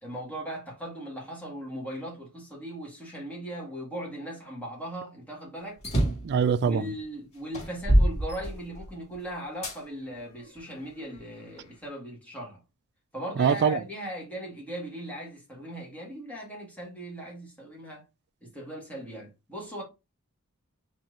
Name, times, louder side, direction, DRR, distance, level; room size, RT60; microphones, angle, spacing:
voice 1, 0.0-5.8 6.6-12.6 13.1-18.0 18.4-19.8, right 1 dB, 5° left, 1.8 m, -38 dB
sound 1, 5.8-6.3 7.0-7.1 7.5-9.0 9.6-9.8 10.5-11.5, right 1 dB, 30° left, 2.0 m, -25 dB
voice 2, 6.2-6.8 13.4-13.8, right 6 dB, 50° right, 0.3 m, -23 dB
4.4 x 3.1 x 3.8 m
head